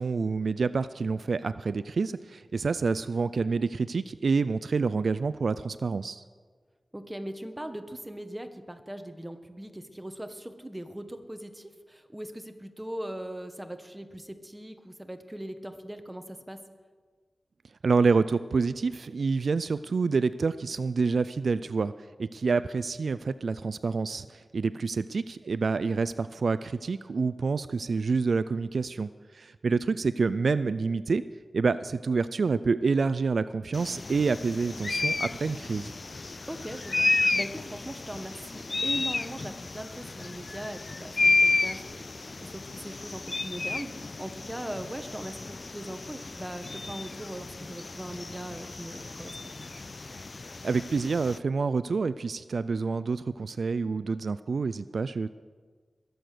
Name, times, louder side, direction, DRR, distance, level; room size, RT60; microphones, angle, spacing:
voice 1, 0.0-6.2 17.8-21.9 22.2-31.2 31.5-35.9 50.6-55.3, right 4 dB, 75° right, 14 dB, 0.4 m, -27 dB
voice 2, 6.9-16.6 36.5-49.4, right 1 dB, 15° right, 7 dB, 1.3 m, -40 dB
sound 1, 33.7-51.4, left 3 dB, 50° left, 0.3 m, -32 dB
21.5 x 7.8 x 6.7 m, 1.5 s
wide cardioid pair, 75°, 0 cm